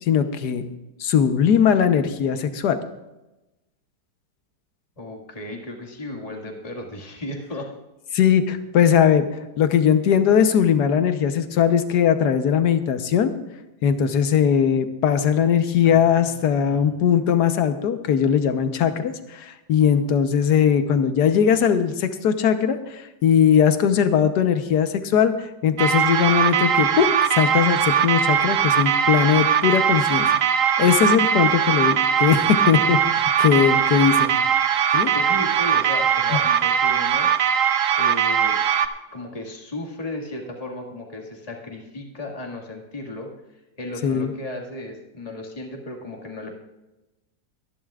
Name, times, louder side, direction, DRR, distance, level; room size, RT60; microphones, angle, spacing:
voice 1, 0.0-0.6 1.0-2.8 8.1-9.3 9.6-13.3 13.8-30.3 30.8-34.3 34.9-35.1 44.0-44.3, left 8 dB, 65° left, 9 dB, 1.5 m, -19 dB
voice 2, 5.0-7.7 15.8-16.9 33.9-34.4 34.9-37.3 37.9-38.6 39.1-46.5, left 1 dB, 20° left, 0 dB, 1.9 m, -35 dB
sound 1, 25.8-38.9, right 8 dB, 60° right, 0.9 m, -20 dB
24.0 x 11.0 x 2.4 m, 1.0 s
omnidirectional pair, 1.9 m